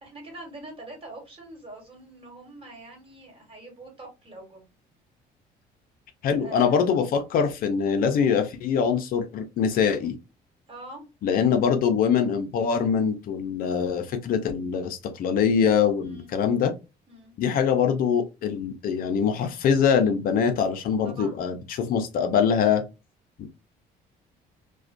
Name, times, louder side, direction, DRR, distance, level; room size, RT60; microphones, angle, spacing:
voice 1, 0.0-4.7 6.3-6.8 10.7-11.0 16.0-16.3 17.1-17.3 21.0-21.4, right 2 dB, 35° right, 1.2 m, -44 dB
voice 2, 6.2-10.1 11.2-16.7 17.4-22.8 23.4-23.5, left 7 dB, 60° left, 0.4 m, -23 dB
2.4 x 2.1 x 2.4 m
cardioid pair, 110°, 17 cm